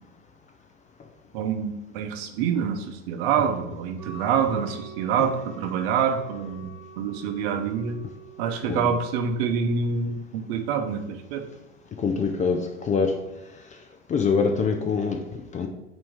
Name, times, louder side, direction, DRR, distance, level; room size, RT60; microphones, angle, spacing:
voice 1, 1.3-8.0 8.4-11.4, right 7 dB, 50° right, 5 dB, 0.9 m, -26 dB
Wind instrument woodwind instrument, 4.0-9.8, right 5 dB, 15° right, 1.5 m, -45 dB
voice 2, 12.0-13.1 14.1-15.7, left 5 dB, 20° left, 5 dB, 0.5 m, -25 dB
8.6 x 3.0 x 3.6 m, 0.97 s
hypercardioid pair, 95°, 37 cm